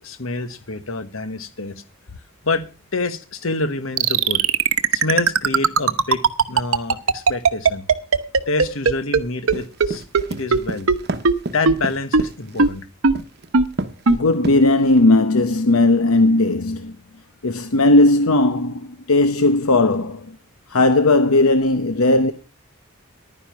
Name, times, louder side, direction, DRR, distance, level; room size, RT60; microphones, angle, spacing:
voice 1, 0.0-1.8 2.4-2.6 2.9-4.4 4.9-6.2 6.5-7.8 8.5-10.0 10.3-10.9 11.5-12.9, left 3 dB, 70° left, 1.3 m, -27 dB
sound 1, 4.0-9.2 9.5-9.6 9.8-9.9 10.1-10.2 10.5-10.6 10.9-11.0 11.3-11.4 11.7-11.8 12.1-12.2 12.6-12.7 13.0-13.1 13.5-13.6 14.1-14.2, right 5 dB, 75° right, 0.9 m, -15 dB
sound 2, 9.5-12.8 13.1-13.5 13.8-14.1 14.4-15.0, right 2 dB, 50° right, 0.9 m, -29 dB
voice 2, 14.1-17.0 17.4-20.4 20.7-22.3, left 2 dB, 85° left, 0.9 m, -17 dB
11.5 x 9.9 x 5.7 m
head